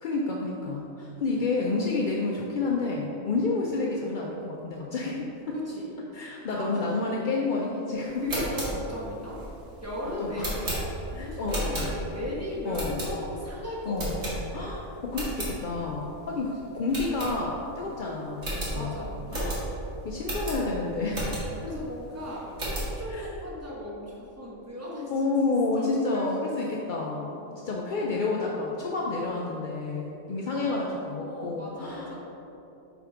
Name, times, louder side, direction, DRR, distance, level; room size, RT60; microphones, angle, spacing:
voice 1, 0.0-5.6 6.1-8.2 10.2-10.5 11.1-12.0 12.6-13.1 13.8-14.2 14.5-18.9 19.3-19.6 20.0-21.4 23.1-23.3 25.1-32.2, left 3 dB, 60° left, -2 dB, 0.5 m, -30 dB
voice 2, 5.5-5.9 6.2-7.1 8.2-9.4 9.8-10.8 11.1-14.4 18.7-19.5 21.6-25.1 25.8-26.9 27.4-27.9 30.5-30.7 31.3-32.2, left 1 dB, 10° right, -6 dB, 1.2 m, -37 dB
sound 1, 8.1-12.3 12.7-13.5 13.9-14.7 15.0-15.5 16.0-16.1 16.3-16.5 16.9-17.8 18.0-18.1 18.4-21.7 22.1-23.0, right 1 dB, 55° right, 1.9 m, -33 dB
7.0 x 3.6 x 4.8 m, 3.0 s
omnidirectional pair, 1.5 m